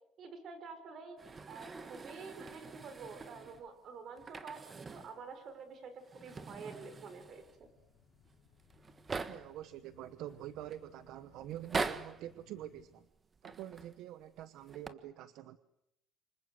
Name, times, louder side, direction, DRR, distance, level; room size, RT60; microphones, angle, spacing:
voice 1, 0.2-1.2 1.5-7.7, right 5 dB, 45° right, 10 dB, 5.3 m, -48 dB
sound 1, 1.2-3.7 4.2-5.2 5.5-5.6 6.0-7.6 8.3-8.4 8.6-9.6 10.3-10.8 11.5-12.3 13.3-14.0 14.6-14.9, right 4 dB, 20° right, 1.5 m, -42 dB
sound 2, 6.8-12.8, left 7 dB, 55° left, 6.3 m, -65 dB
voice 2, 9.3-13.1 13.4-15.6, right 12 dB, 65° right, 13 dB, 1.1 m, -46 dB
29.0 x 26.0 x 8.0 m, 0.82 s
cardioid pair, 145°, 0 cm